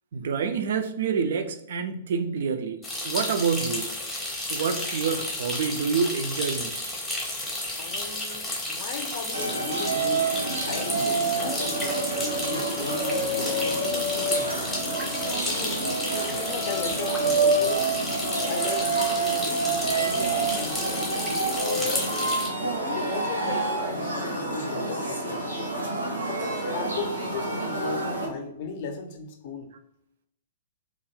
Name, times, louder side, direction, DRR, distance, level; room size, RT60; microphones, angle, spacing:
voice 1, 0.1-3.9 4.5-6.8, right 6 dB, 55° right, 8 dB, 0.3 m, -27 dB
sound 1, 2.8-22.5, left 1 dB, 10° left, 0.7 m, -32 dB
voice 2, 7.8-14.8 15.5-17.9 18.5-22.1 22.8-25.5 26.2-29.7, left 4 dB, 45° left, 4 dB, 0.5 m, -37 dB
sound 2, 9.3-28.3, right 2 dB, 85° right, 0.7 m, -28 dB
2.4 x 2.1 x 3.0 m, 0.77 s
figure-of-eight pair, 110°, 0 cm